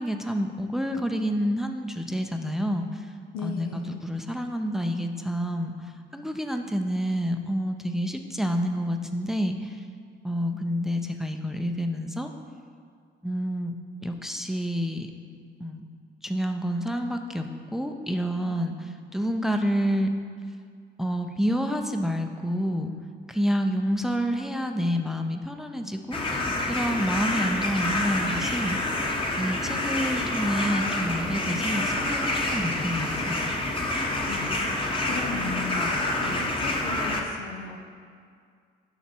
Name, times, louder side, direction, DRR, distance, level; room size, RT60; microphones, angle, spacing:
voice 1, 0.0-3.1 3.4-9.8 10.2-12.3 13.2-13.7 14.0-15.1 15.6-15.8 16.2-20.1 21.0-22.9 23.3-26.3 26.7-29.0 29.4-33.4, equal, ahead, 5 dB, 0.5 m, -28 dB
voice 2, 3.3-4.0 18.4-18.7 34.3-37.8, left 4 dB, 90° left, 2 dB, 0.7 m, -37 dB
sound 1, 26.1-37.2, left 2 dB, 25° left, 1.0 m, -27 dB
7.2 x 5.8 x 4.4 m, 2.2 s
cardioid pair, 90°, 20 cm